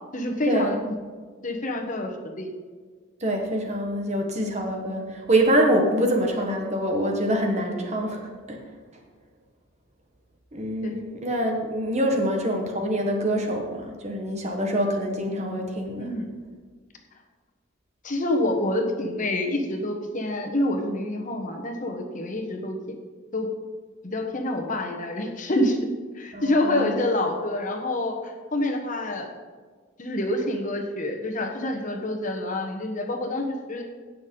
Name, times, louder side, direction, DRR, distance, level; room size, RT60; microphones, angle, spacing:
voice 1, 0.1-0.9 1.4-2.5 10.8-10.9 12.1-12.2 16.0-16.3 18.0-22.8 23.3-23.5 24.0-25.8 26.1-29.3 30.0-33.8, left 1 dB, 40° left, 3 dB, 1.2 m, -27 dB
voice 2, 3.2-8.6 10.5-16.1 26.3-27.0, right 1 dB, 35° right, 2 dB, 1.4 m, -25 dB
17.0 x 6.3 x 3.9 m, 1.5 s
head